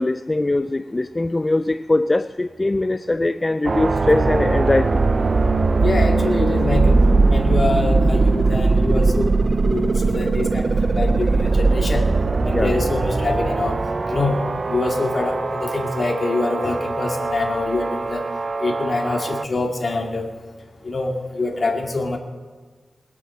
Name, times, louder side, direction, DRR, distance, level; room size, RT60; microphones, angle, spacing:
voice 1, 0.0-5.0 12.5-12.7, left 2 dB, 25° left, 12 dB, 0.3 m, -21 dB
sound 1, 3.6-19.4, right 3 dB, 45° right, 0.5 m, -20 dB
voice 2, 5.8-7.0 7.3-12.0 12.4-13.8 14.1-14.4 14.7-18.2 18.6-20.3 20.8-22.2, left 2 dB, 45° left, 2 dB, 2.2 m, -25 dB
21.0 x 8.3 x 6.9 m, 1.4 s
wide cardioid pair, 105°, 0 cm